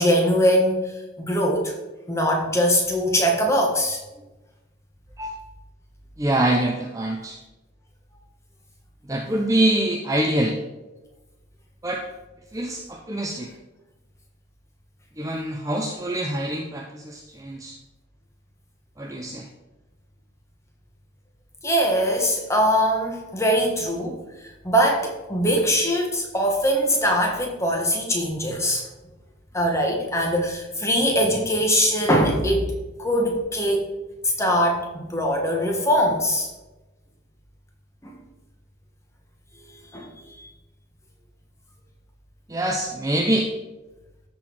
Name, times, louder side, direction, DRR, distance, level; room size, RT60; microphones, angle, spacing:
voice 1, 0.0-1.7 2.1-4.0 21.6-28.9 29.5-32.7 33.0-33.9 34.4-36.5 38.0-38.1 39.9-40.1 40.4-40.5, equal, 15° left, 1 dB, 1.3 m, -22 dB
voice 2, 6.2-7.4 9.1-10.6 11.8-12.0 12.5-13.5 15.2-17.8 19.0-19.5 42.5-43.5, right 1 dB, 15° right, 2 dB, 0.5 m, -25 dB
13.0 x 4.4 x 4.6 m, 1.1 s
head